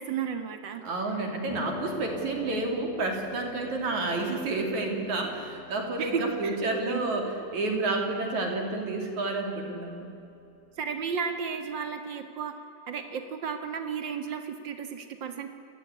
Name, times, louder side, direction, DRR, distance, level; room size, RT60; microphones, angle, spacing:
voice 1, 0.0-0.8 2.2-2.4 6.0-6.6 6.9-7.0 10.8-12.5 12.9-15.5, right 6 dB, 80° right, 7 dB, 1.0 m, -33 dB
voice 2, 0.8-10.1, right 2 dB, 45° right, 3 dB, 3.8 m, -30 dB
Piano, 1.5-11.4, left 5 dB, 75° left, 5.5 m, -45 dB
28.0 x 18.5 x 9.6 m, 3.0 s
omnidirectional pair, 5.0 m